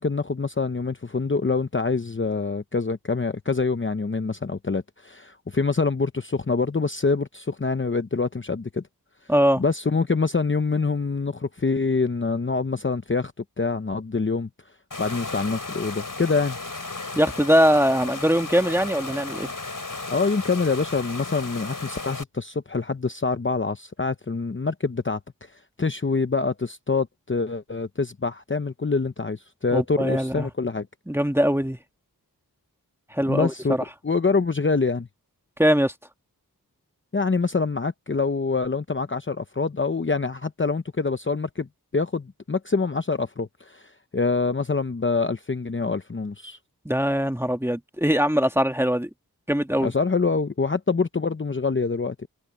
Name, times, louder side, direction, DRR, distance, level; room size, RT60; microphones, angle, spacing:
voice 1, 0.0-8.8 9.6-13.3 13.6-14.5 15.0-16.6 20.1-30.9 33.3-33.8 34.0-35.1 37.1-41.7 41.9-46.6 49.8-52.3, left 4 dB, 35° left, 0.8 m, -25 dB
voice 2, 9.3-9.6 17.2-19.5 29.7-30.5 31.1-31.8 33.1-33.8 35.6-35.9 46.9-49.1 49.5-49.9, equal, 5° right, 1.7 m, -21 dB
Water, 14.9-22.2, left 3 dB, 60° left, 5.4 m, -34 dB
wide cardioid pair, 65°, 37 cm